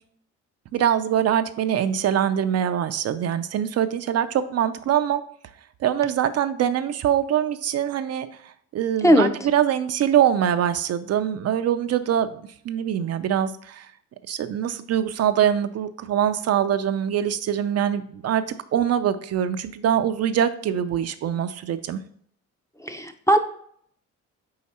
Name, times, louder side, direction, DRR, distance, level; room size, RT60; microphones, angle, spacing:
voice 1, 0.7-5.2 5.8-13.9 14.3-18.5 18.7-22.0, right 9 dB, 55° right, 10 dB, 0.5 m, -23 dB
voice 2, 22.8-23.4, equal, 10° left, 7 dB, 0.6 m, -18 dB
5.0 x 4.7 x 4.2 m, 0.63 s
cardioid pair, 90°, 30 cm